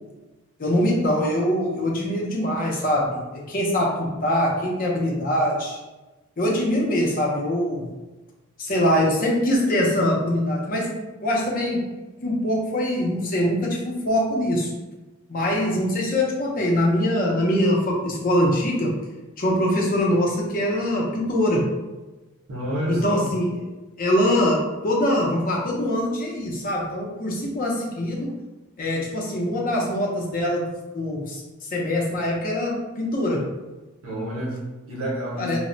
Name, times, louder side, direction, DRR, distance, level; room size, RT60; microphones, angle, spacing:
voice 1, 0.6-5.8 6.4-7.9 8.6-10.9 11.2-11.9 12.2-14.7 15.3-18.9 19.4-21.7 22.9-23.5 24.0-28.3 28.8-31.4 31.7-33.5 35.4-35.6, left 1 dB, 40° left, -2 dB, 0.6 m, -23 dB
voice 2, 22.5-23.3 34.0-35.6, equal, 80° right, -3 dB, 0.8 m, -29 dB
2.1 x 2.1 x 3.7 m, 1.1 s
head